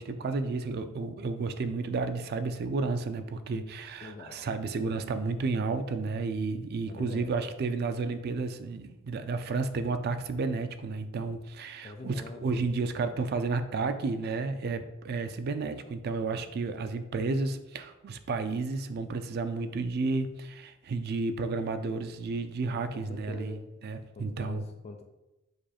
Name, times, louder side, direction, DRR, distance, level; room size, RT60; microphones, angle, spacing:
voice 1, 0.0-23.6 23.8-24.6, right 3 dB, 50° right, 10 dB, 0.3 m, -32 dB
voice 2, 4.0-4.5 6.8-7.3 11.8-12.6 22.9-23.7 24.1-25.0, left 3 dB, 30° left, 4 dB, 0.3 m, -44 dB
5.0 x 2.3 x 4.2 m, 1.0 s
head